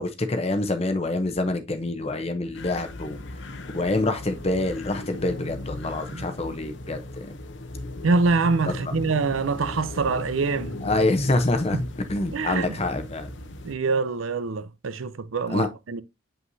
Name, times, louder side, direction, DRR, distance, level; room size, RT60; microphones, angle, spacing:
voice 1, 0.0-3.2 3.7-7.0 10.8-13.3 15.5-15.7, left 2 dB, 30° left, 0.7 m, -26 dB
sound 1, 2.5-13.7, left 2 dB, 60° left, 0.8 m, -37 dB
voice 2, 8.0-10.8 11.7-11.8 12.3-12.8 13.6-16.0, right 4 dB, 80° right, 0.6 m, -25 dB
7.5 x 5.5 x 2.7 m
head